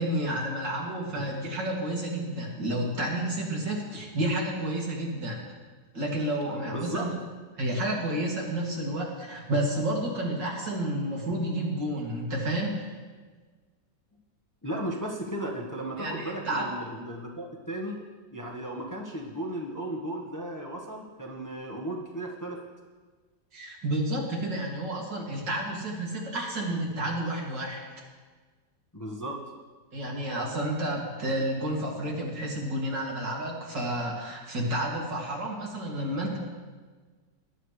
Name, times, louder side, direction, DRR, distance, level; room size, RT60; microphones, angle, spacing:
voice 1, 0.0-5.4 5.9-7.1 7.6-12.9 16.0-16.7 23.5-27.9 29.9-36.4, right 1 dB, 90° right, -2 dB, 3.1 m, -30 dB
voice 2, 6.7-7.1 14.6-18.0 18.3-22.6 28.9-29.4, right 1 dB, 15° left, -1 dB, 1.0 m, -35 dB
19.0 x 11.0 x 3.3 m, 1.4 s
omnidirectional pair, 1.9 m